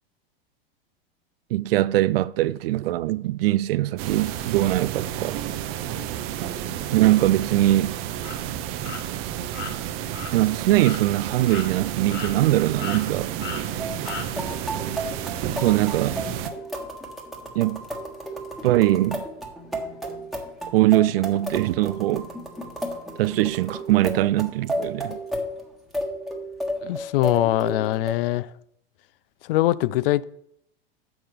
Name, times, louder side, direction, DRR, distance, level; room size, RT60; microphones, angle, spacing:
voice 1, 1.5-5.4 6.9-8.0 10.3-13.3 15.6-16.2 17.6-17.8 18.6-19.2 20.7-22.3 23.2-25.2, right 15 dB, 75° right, 0.4 m, -21 dB
sound 1, 4.0-16.5, right 11 dB, 45° right, 0.8 m, -31 dB
sound 2, 8.2-8.4 8.8-9.0 9.5-9.7 10.1-10.3 10.8-11.0 11.5-11.7 12.1-12.5 12.8-13.0 13.4-13.6 14.1-14.3, left 6 dB, 40° left, 1.5 m, -35 dB
sound 3, 13.8-28.1, equal, ahead, 1.4 m, -33 dB
voice 2, 26.8-28.5 29.4-30.2, left 15 dB, 65° left, 0.5 m, -22 dB
7.0 x 6.1 x 5.0 m
hypercardioid pair, 105°, 30 cm